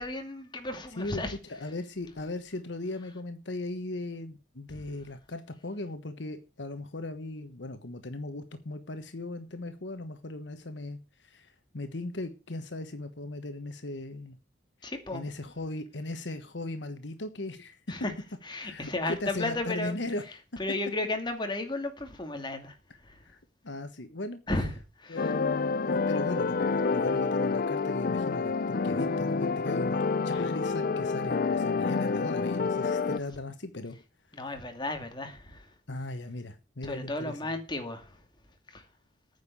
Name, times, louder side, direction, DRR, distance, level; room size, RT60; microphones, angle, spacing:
voice 1, 0.0-1.4 14.8-15.2 17.9-18.1 18.4-19.9 20.6-22.8 23.0-23.2 24.5-24.7 25.0-25.3 34.3-35.7 36.8-38.2 38.7-38.8, left 2 dB, 25° left, 2.4 m, -34 dB
voice 2, 0.9-1.2 1.5-11.0 11.2-14.4 15.1-17.8 18.6-20.2 23.2-23.4 23.6-24.4 25.1-34.0 35.9-37.6, left 2 dB, 70° left, 1.3 m, -38 dB
sound 1, 25.2-33.2, left 4 dB, 50° left, 0.5 m, -28 dB
9.5 x 6.6 x 8.5 m
head